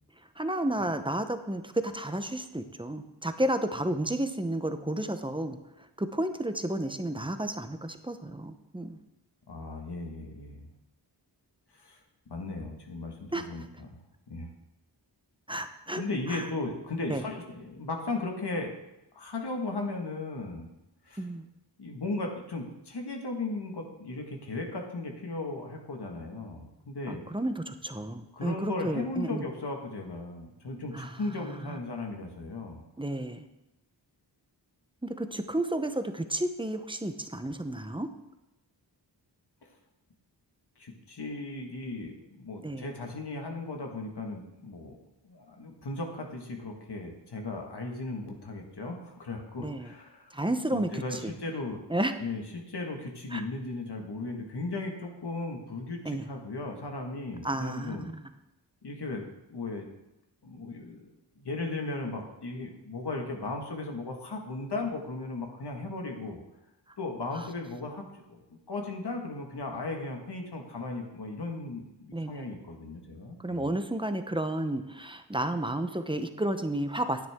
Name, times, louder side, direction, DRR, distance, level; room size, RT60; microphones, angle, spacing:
voice 1, 0.4-5.6 6.0-9.0 13.3-13.5 15.5-16.0 16.3-16.5 17.1-17.2 21.2-21.5 27.1-29.5 30.9-31.2 31.6-31.8 33.0-33.4 35.0-38.1 42.6-42.8 49.6-49.9 50.3-51.3 51.9-52.1 53.3-53.4 56.0-56.3 57.4-58.2 67.3-67.5 72.1-72.5 73.4-77.3, right 1 dB, 10° right, 8 dB, 0.8 m, -32 dB
voice 2, 9.5-10.7 11.7-12.0 12.3-14.0 14.3-14.5 16.0-18.7 19.1-20.7 21.1-21.2 21.8-27.2 28.3-32.8 39.6-39.7 40.8-45.0 45.2-50.3 50.7-51.8 52.2-58.1 58.8-59.2 59.5-59.9 60.4-61.1 61.4-66.4 67.0-68.4 68.7-73.7, left 2 dB, 70° left, 2 dB, 1.8 m, -36 dB
10.5 x 9.5 x 3.6 m, 0.92 s
wide cardioid pair, 75°, 42 cm